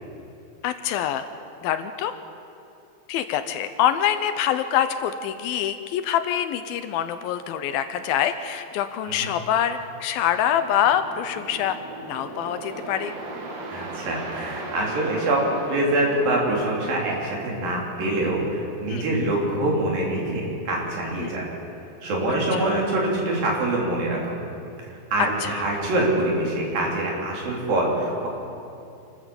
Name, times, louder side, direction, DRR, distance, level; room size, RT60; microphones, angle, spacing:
voice 1, 0.6-1.3 1.6-2.1 3.1-13.1 18.9-19.3 21.2-21.3 22.5-22.7 25.4-25.6, left 10 dB, 80° left, 10 dB, 2.5 m, -25 dB
sound 1, 10.4-16.7, right 2 dB, 90° right, 4.3 m, -37 dB
voice 2, 13.7-15.4 15.7-21.5 22.0-24.4 25.1-28.3, right 1 dB, 65° right, -2 dB, 5.2 m, -25 dB
27.5 x 13.5 x 7.2 m, 2.7 s
omnidirectional pair, 4.5 m